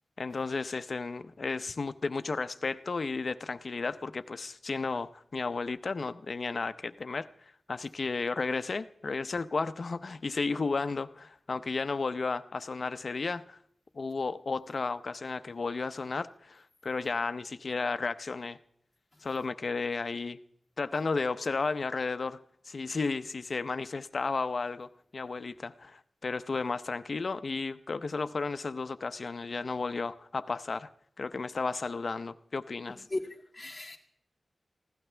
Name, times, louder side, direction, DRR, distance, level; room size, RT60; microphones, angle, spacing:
voice 1, 0.2-13.6 13.9-18.6 19.2-20.4 20.8-22.4 22.7-30.9 31.2-33.0, left 4 dB, 55° left, 12 dB, 0.7 m, -33 dB
voice 2, 33.1-34.0, left 2 dB, 15° left, -4 dB, 2.1 m, -37 dB
24.0 x 16.0 x 3.4 m, 0.67 s
wide cardioid pair, 120°, 0 cm